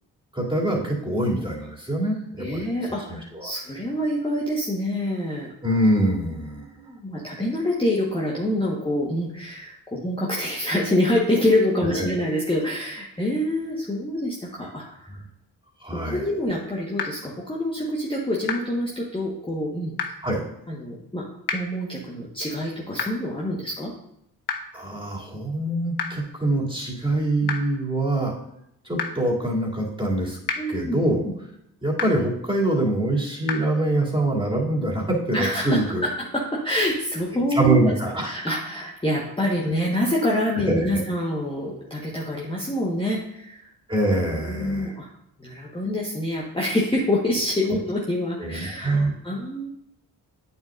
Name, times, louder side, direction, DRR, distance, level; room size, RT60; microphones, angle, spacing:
voice 1, 0.3-3.5 5.6-6.7 11.8-12.1 15.1-15.2 15.8-16.3 20.2-20.4 24.7-28.3 28.8-30.4 30.7-31.2 31.8-36.0 37.5-38.5 40.7-41.0 43.9-44.9 48.4-49.1, right 1 dB, 10° right, -4 dB, 3.0 m, -24 dB
voice 2, 2.4-5.5 6.6-15.1 15.9-19.9 20.7-21.2 21.5-23.9 30.6-31.0 31.2-31.3 35.3-37.8 38.2-43.7 44.4-45.1 45.4-49.7, left 1 dB, 10° left, -5 dB, 1.5 m, -26 dB
sound 1, 17.0-17.1 18.5-18.6 20.0-20.1 21.5-21.6 23.0-23.1 24.5-24.6 26.0-26.1 27.5-27.6 29.0-29.1 30.5-30.6 32.0-32.1 33.5-33.6, left 7 dB, 55° left, 1.1 m, -26 dB
8.8 x 7.1 x 2.6 m, 0.78 s
hypercardioid pair, 40°, 45 cm